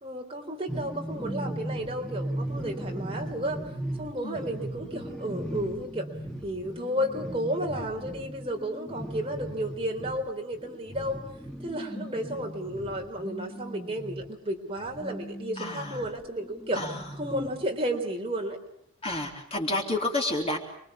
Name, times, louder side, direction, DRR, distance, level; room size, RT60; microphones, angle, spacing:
voice 1, 0.0-3.6 4.0-6.1 6.4-11.2 11.6-16.8 17.2-18.6, equal, 25° right, 2 dB, 3.7 m, -32 dB
sound 1, 0.7-14.4 14.8-17.6, right 1 dB, 5° left, 2.2 m, -38 dB
voice 2, 11.9-12.4 15.6-16.1 16.8-17.1 19.0-20.6, left 2 dB, 30° left, 1 dB, 3.9 m, -31 dB
29.5 x 23.5 x 7.3 m, 0.69 s
head